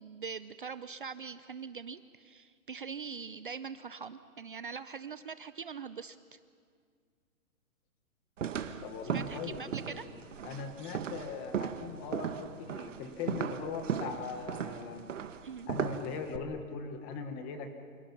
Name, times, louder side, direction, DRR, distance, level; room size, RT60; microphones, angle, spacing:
voice 1, 0.0-6.2 9.1-10.1 15.4-15.7, right 6 dB, 40° right, 13 dB, 0.5 m, -42 dB
sound 1, 8.4-16.4, right 8 dB, 60° right, 1.6 m, -37 dB
voice 2, 8.8-9.6 9.9-10.1 10.4-15.0 15.7-17.7, left 5 dB, 10° left, 6 dB, 1.0 m, -40 dB
29.0 x 27.5 x 5.9 m, 2.1 s
hypercardioid pair, 170°, 42 cm